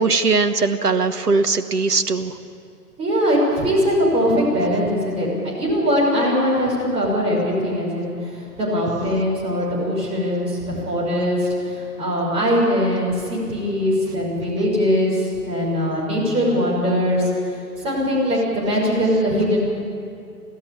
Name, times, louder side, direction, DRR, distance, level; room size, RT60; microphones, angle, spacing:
voice 1, 0.0-2.3, right 4 dB, 75° right, 9 dB, 1.3 m, -20 dB
voice 2, 3.0-19.6, equal, 10° right, -5 dB, 6.2 m, -21 dB
25.5 x 15.5 x 9.9 m, 2.5 s
figure-of-eight pair, 125°, 47 cm